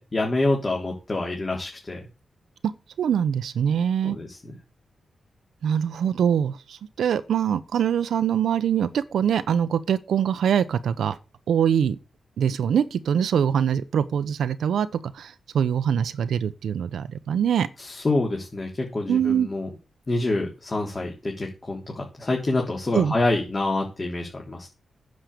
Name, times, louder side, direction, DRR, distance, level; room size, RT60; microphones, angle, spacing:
voice 1, 0.0-2.0 4.0-4.6 17.8-19.7 20.1-24.7, left 2 dB, 35° left, 3.7 m, -27 dB
voice 2, 3.0-4.2 5.6-11.2 11.5-12.0 12.4-14.9 15.1-17.7 19.1-19.5 22.9-23.1, right 8 dB, 85° right, 0.9 m, -23 dB
9.7 x 6.7 x 8.4 m
cardioid pair, 85°, 0 cm